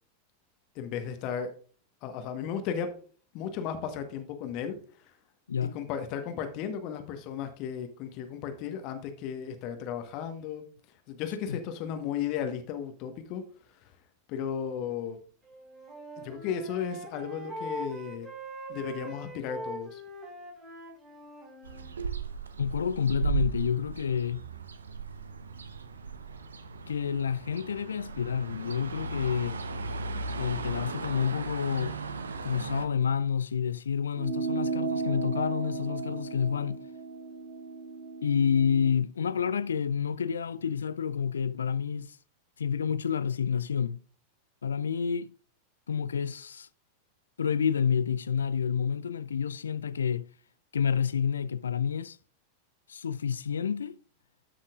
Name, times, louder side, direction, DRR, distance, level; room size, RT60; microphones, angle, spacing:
voice 1, 0.7-1.5 2.0-2.9 3.3-4.7 5.7-10.6 11.1-13.4 14.3-15.2 16.2-18.3 18.7-20.0, left 8 dB, 40° left, 1.3 m, -35 dB
Wind instrument woodwind instrument, 15.5-21.9, right 1 dB, 20° right, 4.3 m, -42 dB
sound 1, 21.6-32.9, right 4 dB, 70° right, 0.8 m, -36 dB
voice 2, 22.6-24.4 26.9-29.6 30.4-32.0 32.4-36.8 38.2-42.2 42.6-44.0 44.6-45.3 45.9-46.7 47.4-50.3 50.7-52.2 52.9-54.0, left 7 dB, 70° left, 0.4 m, -29 dB
sound 2, 34.1-39.0, right 4 dB, 50° right, 1.2 m, -34 dB
13.0 x 5.9 x 2.4 m
figure-of-eight pair, 90°, 0 cm